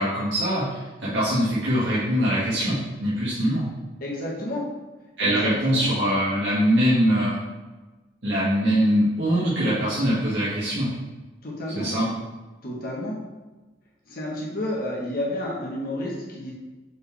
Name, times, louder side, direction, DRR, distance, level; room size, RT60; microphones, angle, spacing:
voice 1, 0.0-3.7 5.2-7.4 8.2-10.9 11.7-12.1, equal, 65° right, -11 dB, 1.9 m, -23 dB
voice 2, 4.0-4.6 5.2-5.9 11.4-11.9 12.6-13.2 14.1-16.5, left 1 dB, 50° left, -4 dB, 1.3 m, -30 dB
6.6 x 4.5 x 3.4 m, 1.2 s
head